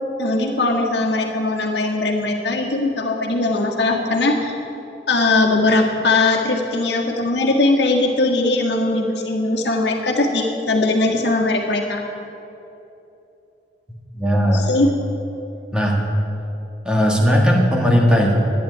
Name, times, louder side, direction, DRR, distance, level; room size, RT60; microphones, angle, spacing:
voice 1, 0.2-4.6 5.1-12.0 14.5-14.9, left 2 dB, 75° left, 1 dB, 1.8 m, -20 dB
voice 2, 14.2-14.7 15.7-16.0 16.8-18.4, equal, 5° right, -2 dB, 2.0 m, -17 dB
12.0 x 9.7 x 9.5 m, 3.0 s
head